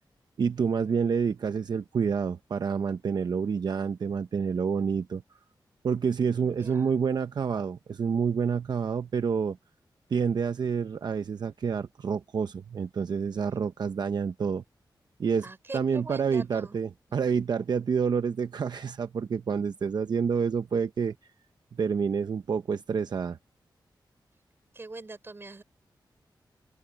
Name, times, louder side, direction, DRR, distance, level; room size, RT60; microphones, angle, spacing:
voice 1, 0.4-5.2 5.8-9.6 10.1-14.6 15.2-15.5 15.7-21.1 21.8-23.4, right 6 dB, 60° right, 0.7 m, -28 dB
voice 2, 6.3-7.0 15.4-16.8 17.3-17.5 24.7-25.6, right 3 dB, 30° right, 3.7 m, -43 dB
open air
wide cardioid pair, 130°, 8 cm